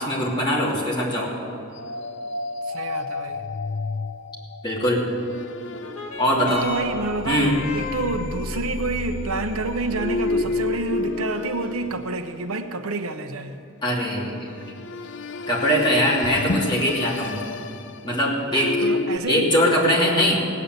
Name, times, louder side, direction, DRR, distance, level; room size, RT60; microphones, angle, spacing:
voice 1, 0.0-1.3 4.6-5.0 6.2-6.6 7.2-7.6 13.8-14.5 15.5-17.4 18.0-18.9 19.3-20.4, equal, 20° left, -5 dB, 2.9 m, -21 dB
sound 1, 1.7-12.9 14.4-19.2, left 3 dB, 55° left, 0.5 m, -31 dB
voice 2, 2.6-3.4 6.4-13.6 18.5-19.5, right 3 dB, 75° right, 8 dB, 0.8 m, -28 dB
sound 2, 5.6-14.6 15.5-15.6, left 3 dB, 85° left, 1.9 m, -39 dB
18.0 x 8.6 x 8.0 m, 2.7 s
head